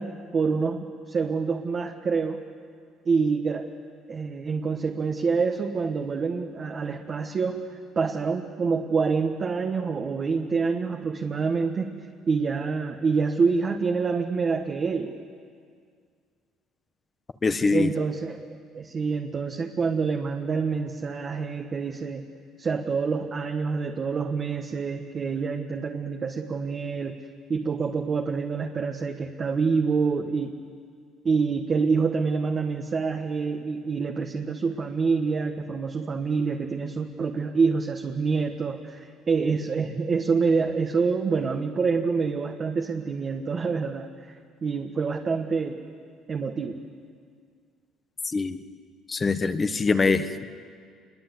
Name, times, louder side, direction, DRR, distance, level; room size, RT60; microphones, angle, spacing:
voice 1, 0.0-2.4 3.0-3.7 4.1-12.0 12.3-15.1 17.7-22.2 22.6-27.2 27.5-30.6 31.2-45.8 46.3-46.8, right 5 dB, 35° right, 3 dB, 1.4 m, -27 dB
voice 2, 17.4-17.9 48.2-48.6 49.1-50.4, left 4 dB, 25° left, 10 dB, 1.2 m, -23 dB
27.5 x 22.5 x 8.2 m, 2.1 s
cardioid pair, 125°, 0 cm